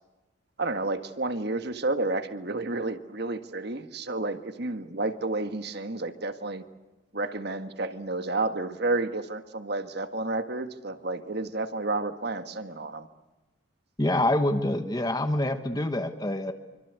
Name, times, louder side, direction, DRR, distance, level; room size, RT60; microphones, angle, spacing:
voice 1, 0.6-6.6 7.1-13.1, right 2 dB, 55° right, 9 dB, 1.6 m, -31 dB
voice 2, 14.0-16.5, left 1 dB, 20° left, 7 dB, 1.3 m, -26 dB
26.0 x 25.0 x 8.2 m, 1.1 s
head